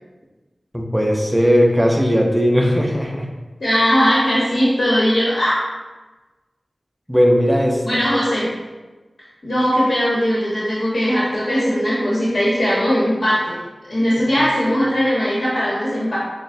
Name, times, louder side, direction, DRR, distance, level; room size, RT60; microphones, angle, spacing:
voice 1, 0.7-3.3 7.1-7.8 14.3-14.5, equal, 10° right, 1 dB, 0.6 m, -17 dB
voice 2, 3.6-5.6 7.8-8.5 9.4-13.6 13.9-16.2, equal, 65° left, -7 dB, 1.0 m, -19 dB
6.3 x 2.1 x 2.6 m, 1.2 s
wide cardioid pair, 45°, 0 cm